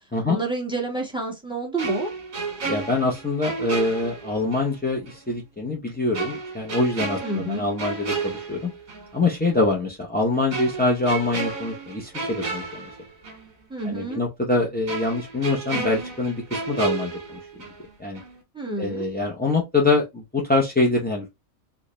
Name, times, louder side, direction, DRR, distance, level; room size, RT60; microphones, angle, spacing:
voice 1, 0.3-2.1 7.2-7.6 13.7-14.2 18.5-19.0, right 2 dB, 5° right, 1.0 m, -29 dB
sound 1, 1.8-4.7 5.1-5.2 6.1-9.1 9.4-9.6 10.5-13.5 13.8-13.9 14.9-17.9 18.2-18.4, right 4 dB, 80° right, 1.9 m, -32 dB
voice 2, 2.7-8.7 9.1-12.9 13.8-17.4 18.0-18.2 18.8-21.4, left 3 dB, 15° left, 0.4 m, -24 dB
4.6 x 2.3 x 3.1 m
omnidirectional pair, 1.4 m